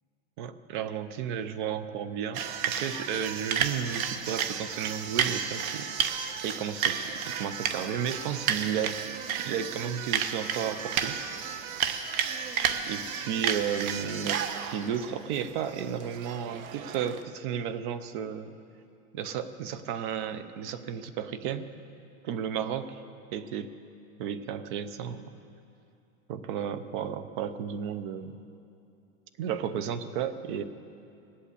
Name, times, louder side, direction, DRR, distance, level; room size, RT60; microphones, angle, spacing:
voice 1, 0.4-7.1 7.4-9.0 9.4-11.2 12.9-18.5 19.1-21.7 22.2-23.0 23.3-23.7 24.2-25.4 26.3-28.4 29.4-30.6, right 8 dB, 40° right, 12 dB, 0.7 m, -33 dB
sound 1, 2.3-17.2, right 8 dB, 85° right, 1.1 m, -32 dB
19.0 x 8.4 x 8.4 m, 2.6 s
supercardioid pair, 160°, 41 cm